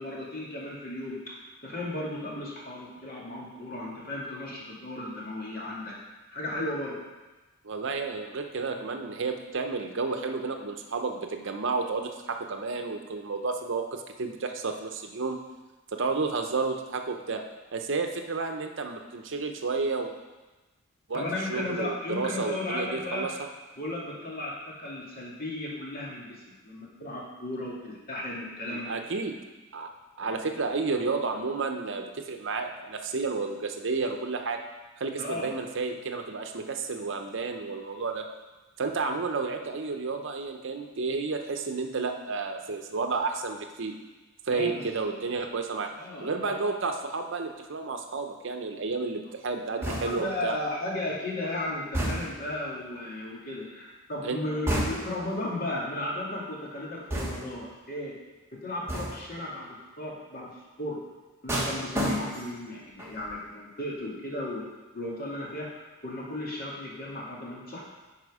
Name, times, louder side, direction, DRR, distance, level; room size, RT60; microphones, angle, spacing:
voice 1, 0.0-6.0 6.3-7.0 21.1-23.3 23.8-28.9 30.2-30.5 35.2-35.5 44.5-44.8 46.0-46.7 49.8-58.1 58.5-60.5 60.8-61.0 61.4-64.6 64.9-67.8, left 1 dB, 50° left, -4 dB, 2.1 m, -35 dB
voice 2, 7.6-15.4 15.9-17.4 17.7-20.1 21.1-21.2 21.5-23.3 28.7-29.4 29.7-29.9 30.2-34.6 35.0-38.3 38.8-44.0 44.5-45.9 46.2-50.6 54.2-54.4, right 4 dB, 65° right, 5 dB, 0.7 m, -31 dB
sound 1, 49.8-50.4 51.9-52.5 54.7-55.3 57.1-57.7 58.9-59.3 61.5-62.6 63.0-63.4, equal, 15° right, 1.3 m, -31 dB
10.5 x 4.3 x 4.9 m, 1.2 s
head